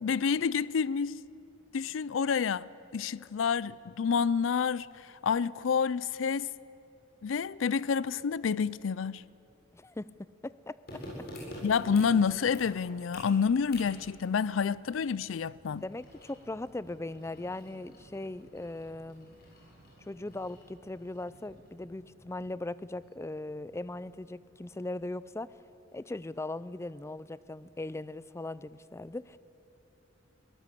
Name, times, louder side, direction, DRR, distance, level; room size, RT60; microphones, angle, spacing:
voice 1, 0.0-1.2 1.7-6.5 7.2-9.2 11.6-15.8, left 6 dB, 85° left, 0.4 m, -29 dB
voice 2, 9.7-11.0 15.7-19.4 20.0-25.5 25.9-29.4, left 2 dB, 15° left, 0.4 m, -39 dB
sound 1, 10.9-21.3 21.7-21.8, left 1 dB, 55° left, 7.8 m, -49 dB
Motorcycle, 13.1-25.3, right 1 dB, 55° right, 1.6 m, -61 dB
23.5 x 18.0 x 8.4 m
head